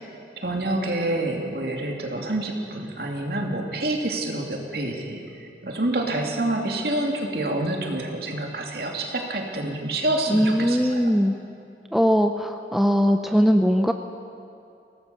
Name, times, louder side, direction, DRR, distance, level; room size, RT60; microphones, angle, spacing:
voice 1, 0.4-10.9, right 1 dB, 55° right, 1 dB, 2.7 m, -27 dB
voice 2, 10.3-11.3 11.9-13.9, equal, ahead, 5 dB, 0.6 m, -20 dB
23.5 x 18.0 x 7.0 m, 2.6 s
head